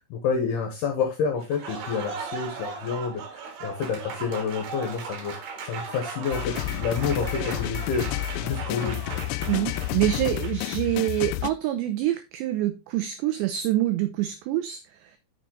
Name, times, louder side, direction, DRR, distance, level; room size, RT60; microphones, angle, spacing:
voice 1, 0.0-5.3 5.6-8.1 8.4-9.2, left 6 dB, 70° left, 4 dB, 2.5 m, -29 dB
Applause, 1.4-10.8, right 5 dB, 65° right, 2.9 m, -37 dB
sound 1, 6.3-11.5, left 17 dB, 90° left, 2.5 m, -30 dB
voice 2, 9.5-14.8, right 14 dB, 85° right, 9 dB, 2.5 m, -26 dB
7.2 x 6.6 x 3.8 m, 0.26 s
omnidirectional pair, 5.8 m